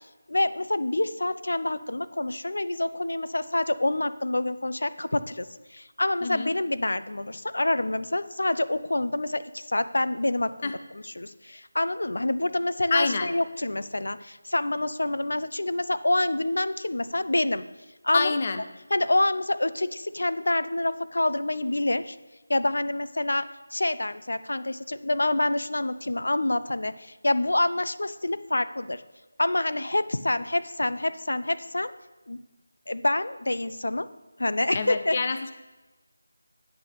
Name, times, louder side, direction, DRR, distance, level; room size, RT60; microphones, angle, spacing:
voice 1, 0.3-17.6 18.0-18.3 18.9-22.2 22.5-29.0 29.4-31.9 32.3-32.4 32.9-34.1 34.4-35.2, left 1 dB, 80° left, 13 dB, 0.6 m, -27 dB
voice 2, 12.9-13.3 18.1-18.6 34.7-35.5, left 4 dB, 25° left, 9 dB, 0.5 m, -26 dB
8.3 x 6.2 x 6.7 m, 1.1 s
figure-of-eight pair, 175°, 0 cm